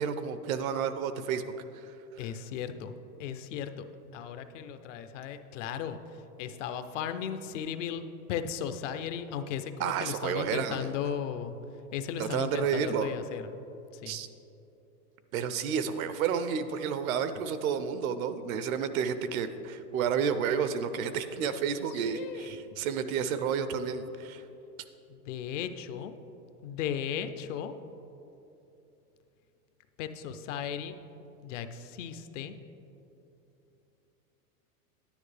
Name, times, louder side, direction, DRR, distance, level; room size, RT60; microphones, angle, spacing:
voice 1, 0.0-1.9 9.8-10.9 12.2-13.1 14.1-14.3 15.3-24.4, right 7 dB, 60° right, 11 dB, 0.7 m, -31 dB
voice 2, 2.2-3.8 4.1-11.5 11.9-13.5 13.9-14.2 21.9-22.6 25.1-26.1 26.6-27.7 30.0-31.0 31.4-32.6, left 8 dB, 50° left, 9 dB, 0.5 m, -36 dB
10.0 x 10.0 x 3.3 m, 2.9 s
supercardioid pair, 150°, 48 cm